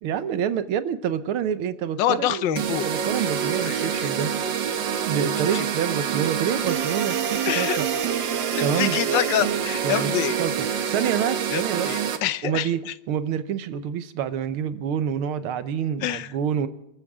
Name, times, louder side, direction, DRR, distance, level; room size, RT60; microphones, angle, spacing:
voice 1, 0.0-4.3 5.0-7.9 8.6-9.0 9.8-10.1 10.4-11.9 12.4-12.8 13.1-16.7, right 8 dB, 85° right, 12 dB, 1.8 m, -27 dB
voice 2, 2.0-2.9 3.6-4.1 5.5-5.7 7.4-7.8 8.6-10.4 11.5-12.9 16.0-16.3, left 11 dB, 70° left, 15 dB, 1.3 m, -26 dB
sound 1, 2.6-12.2, right 8 dB, 65° right, 1.8 m, -26 dB
27.0 x 14.0 x 3.6 m, 0.89 s
omnidirectional pair, 2.3 m